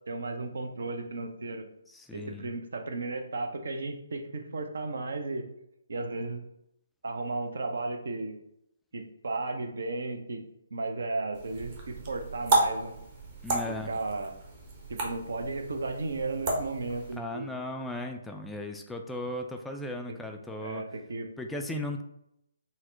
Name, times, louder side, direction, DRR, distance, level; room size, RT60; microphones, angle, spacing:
voice 1, 0.1-1.7 2.1-5.5 5.9-6.4 7.0-8.4 8.9-10.4 10.7-12.9 13.7-14.3 14.9-17.5 20.6-21.3, right 3 dB, 60° right, 5 dB, 0.6 m, -34 dB
voice 2, 1.9-2.5 13.4-13.9 17.2-20.8 21.4-22.0, left 1 dB, 5° left, 3 dB, 0.3 m, -36 dB
sound 1, 11.3-17.2, right 2 dB, 30° right, 0.8 m, -32 dB
4.1 x 2.1 x 3.8 m, 0.79 s
figure-of-eight pair, 135°, 0 cm